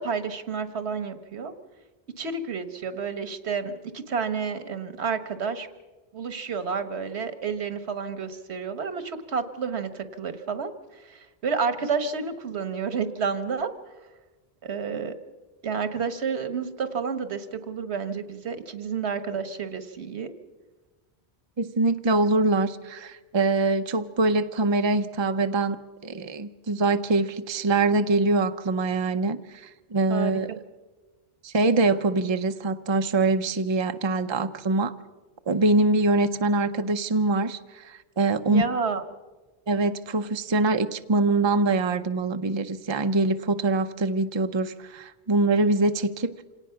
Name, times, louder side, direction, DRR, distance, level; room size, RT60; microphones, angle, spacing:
voice 1, 0.0-1.5 2.2-5.7 6.1-13.7 14.6-15.1 15.6-20.3 30.1-30.6 38.5-39.0, right 5 dB, 90° right, 11 dB, 1.5 m, -30 dB
voice 2, 21.6-25.8 26.0-30.5 31.4-34.9 35.5-38.6 39.7-46.3, right 3 dB, 30° right, 9 dB, 0.6 m, -24 dB
27.0 x 18.0 x 5.7 m, 1.2 s
omnidirectional pair, 1.1 m